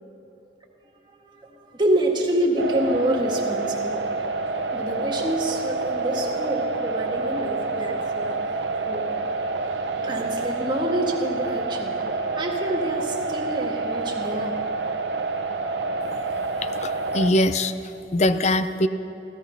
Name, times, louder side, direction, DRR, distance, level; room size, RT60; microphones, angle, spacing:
voice 1, 1.3-4.0 4.7-8.4 8.8-9.0 10.0-11.9 12.3-14.5 18.1-18.2, right 1 dB, 25° right, 0 dB, 1.8 m, -27 dB
sound 1, 2.6-17.3, right 3 dB, 85° right, 1.0 m, -28 dB
voice 2, 16.6-18.9, left 1 dB, 40° left, 11 dB, 0.5 m, -23 dB
16.0 x 14.0 x 5.8 m, 2.9 s
head